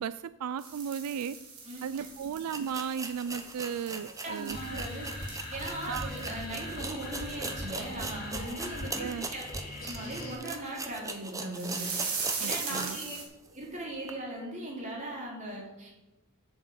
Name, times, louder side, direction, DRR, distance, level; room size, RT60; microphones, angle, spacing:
voice 1, 0.0-1.4 1.8-4.8 5.9-6.1 9.0-9.3 12.4-13.0, right 7 dB, 85° right, 15 dB, 0.3 m, -35 dB
sound 1, 0.6-6.5 6.9-7.0 7.3-7.4 8.0-8.1 8.6-8.7 11.5-13.2, right 5 dB, 65° right, 2.9 m, -39 dB
sound 2, 1.9-2.0 2.5-13.1 13.5-13.6 14.0-14.1, right 3 dB, 15° right, 0.8 m, -40 dB
voice 2, 4.2-5.1 5.5-9.4 9.8-12.0 12.4-13.1 13.5-16.0, right 1 dB, 35° right, -3 dB, 3.4 m, -39 dB
sound 3, 4.5-10.3, left 1 dB, 40° left, 3.4 m, -40 dB
7.8 x 7.7 x 7.4 m, 1.0 s
head